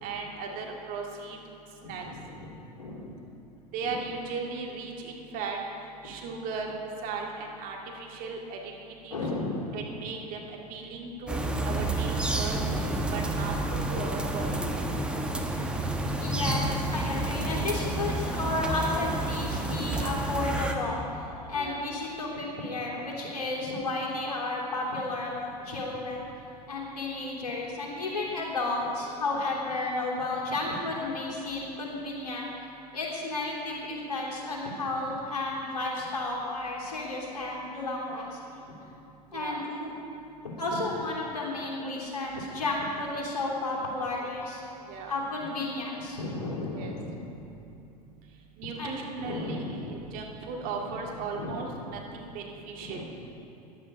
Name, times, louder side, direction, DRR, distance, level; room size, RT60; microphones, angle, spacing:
voice 1, 0.0-1.4 1.8-2.0 3.7-5.6 6.0-6.7 7.0-8.6 9.0-9.2 9.7-10.4 10.7-11.4 11.6-12.6 13.1-14.5 21.5-21.8 39.3-39.6 44.9-45.2 46.7-46.9 48.6-53.0, right 4 dB, 40° right, 0 dB, 2.0 m, -37 dB
voice 2, 1.8-2.5 2.8-3.1 3.8-3.9 9.1-9.8 11.4-11.9 12.4-13.0 14.3-14.9 16.2-26.2 26.7-32.5 32.9-38.7 39.3-39.9 40.4-44.6 45.0-47.4 48.8-49.9 50.6-50.7 51.3-51.6 52.8-53.0, left 2 dB, 70° left, -3 dB, 3.1 m, -33 dB
sound 1, 11.3-20.7, right 2 dB, 5° right, 1.1 m, -30 dB
14.5 x 10.5 x 5.3 m, 2.8 s
figure-of-eight pair, 85°, 21 cm